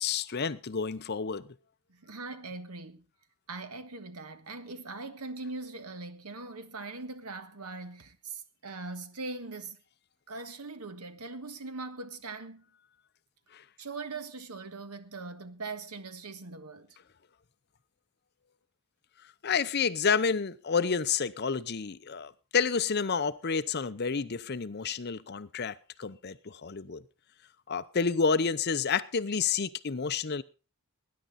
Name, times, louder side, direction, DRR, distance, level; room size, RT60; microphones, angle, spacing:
voice 1, 0.0-1.4 13.5-13.6 19.4-27.0 27.7-30.4, left 5 dB, 45° left, 0.7 m, -29 dB
voice 2, 1.9-3.0 3.5-9.8 10.3-12.6 13.8-17.0, right 3 dB, 85° right, 1.5 m, -41 dB
19.5 x 10.5 x 4.1 m
head